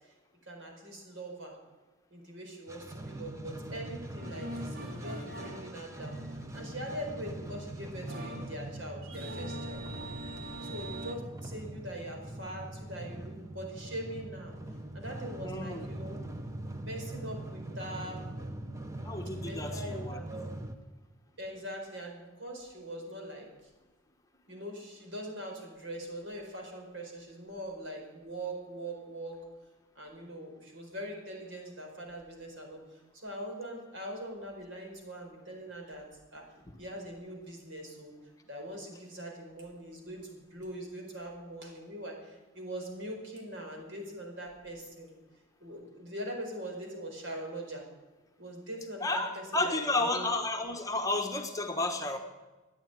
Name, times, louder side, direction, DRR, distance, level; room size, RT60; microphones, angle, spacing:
voice 1, 0.4-1.6 2.1-9.9 10.6-14.5 14.9-16.2 16.8-18.3 19.4-20.5 21.4-23.5 24.5-29.4 29.9-32.8 33.1-36.1 36.3-36.4 36.8-38.1 38.5-45.1 45.6-47.8 48.4-50.3, right 1 dB, 70° right, 1 dB, 4.7 m, -42 dB
sound 1, 2.7-20.7, right 1 dB, 15° right, 1.0 m, -42 dB
sound 2, 3.9-11.1, right 1 dB, 50° right, 2.5 m, -43 dB
voice 2, 15.4-15.8 19.0-20.2 49.0-52.2, left 2 dB, 15° left, 4 dB, 1.2 m, -32 dB
14.5 x 9.7 x 9.2 m, 1.2 s
head